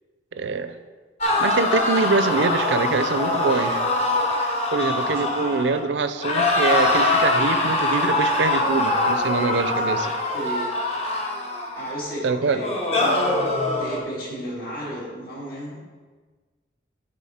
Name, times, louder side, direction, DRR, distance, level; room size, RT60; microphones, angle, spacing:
voice 1, 0.3-0.7 1.4-3.8 4.7-10.1 12.2-12.6, right 4 dB, 70° right, 10 dB, 0.4 m, -24 dB
sound 1, 1.2-5.9 6.2-12.0 12.6-14.0, left 2 dB, 35° left, 0.9 m, -23 dB
voice 2, 10.3-10.7 11.8-12.8 13.7-15.8, equal, 50° left, -5 dB, 2.1 m, -33 dB
10.5 x 3.9 x 4.2 m, 1.4 s
head